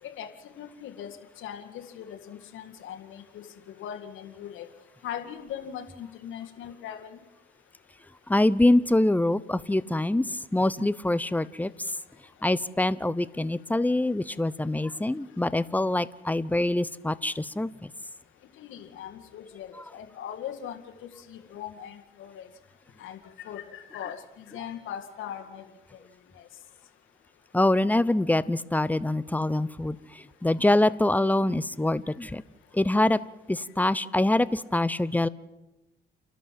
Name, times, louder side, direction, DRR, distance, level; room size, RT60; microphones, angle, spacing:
voice 1, 0.0-4.7 5.0-7.2 18.6-22.5 23.0-25.7 26.3-26.5, left 9 dB, 80° left, 5 dB, 2.0 m, -40 dB
voice 2, 8.3-10.3 10.5-11.7 12.4-17.9 27.5-30.0 30.4-32.4 32.7-33.2 33.5-35.3, left 1 dB, 10° left, 16 dB, 0.8 m, -24 dB
29.5 x 12.5 x 7.6 m, 1.0 s
cardioid pair, 90°, 20 cm